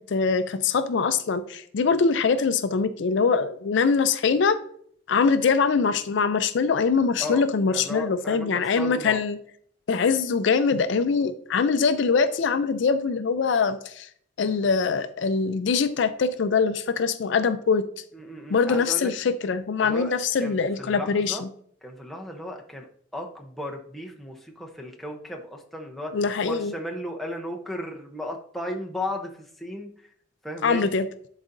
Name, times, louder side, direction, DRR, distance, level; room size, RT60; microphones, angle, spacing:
voice 1, 0.1-4.6 5.1-9.4 9.9-14.1 14.4-18.0 18.5-21.5 26.1-26.7 30.6-31.1, left 5 dB, 65° left, 11 dB, 0.4 m, -23 dB
voice 2, 7.7-9.2 18.1-19.1 19.8-21.4 21.8-22.9 23.1-29.9 30.4-30.9, left 1 dB, ahead, 0 dB, 0.7 m, -35 dB
11.0 x 4.0 x 2.6 m, 0.63 s
head